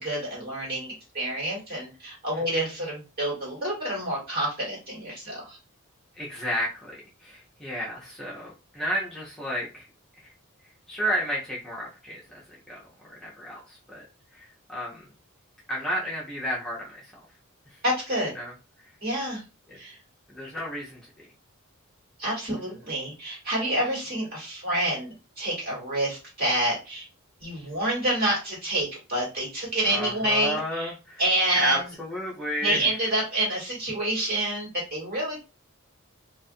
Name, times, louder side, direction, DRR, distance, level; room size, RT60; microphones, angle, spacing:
voice 1, 0.0-5.6 17.8-18.3 19.0-19.4 19.7-20.0 22.2-27.1 27.4-30.9 31.2-31.9 32.6-35.5, right 1 dB, 45° right, -4 dB, 1.5 m, -28 dB
voice 2, 6.2-9.9 10.2-10.3 10.9-14.0 14.3-15.1 15.7-17.1 17.7-17.8 18.3-18.5 19.7-19.8 20.3-21.0 29.9-31.2 31.5-32.9, equal, 5° left, -6 dB, 0.5 m, -32 dB
2.4 x 2.4 x 2.6 m, 0.31 s
head